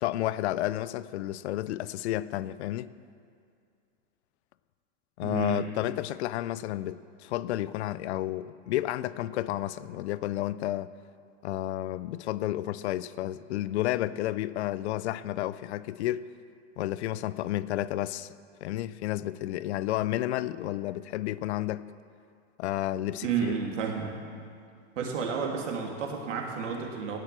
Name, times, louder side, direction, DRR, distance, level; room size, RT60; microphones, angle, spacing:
voice 1, 0.0-2.9 5.2-10.9 11.4-16.3 16.8-18.3 18.6-21.9 22.6-23.6, left 14 dB, 65° left, 0.5 m, -31 dB
voice 2, 5.2-5.6 23.2-24.2 25.0-27.2, right 6 dB, 80° right, 2.6 m, -31 dB
17.5 x 6.7 x 7.5 m
supercardioid pair, 155°, 37 cm